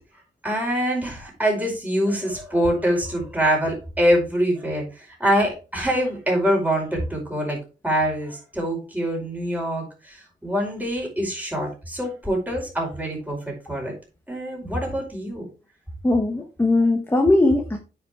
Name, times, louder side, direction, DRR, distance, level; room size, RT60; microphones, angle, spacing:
voice 1, 0.4-7.6 7.8-13.9 14.3-15.5, equal, 10° right, -1 dB, 5.1 m, -24 dB
voice 2, 16.0-17.8, left 2 dB, 10° left, 4 dB, 1.3 m, -19 dB
9.2 x 5.9 x 3.7 m, 0.32 s
wide cardioid pair, 130°, 19 cm